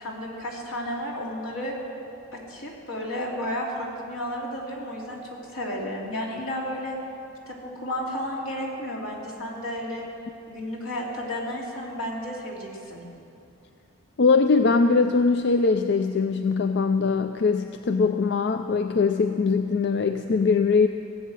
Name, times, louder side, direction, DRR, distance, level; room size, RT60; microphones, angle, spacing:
voice 1, 0.0-1.8 2.3-7.0 7.5-10.0 10.5-13.0, left 1 dB, 80° left, -3 dB, 2.9 m, -32 dB
voice 2, 14.2-20.9, left 4 dB, 50° left, 8 dB, 0.4 m, -21 dB
18.0 x 8.4 x 7.6 m, 2.7 s
head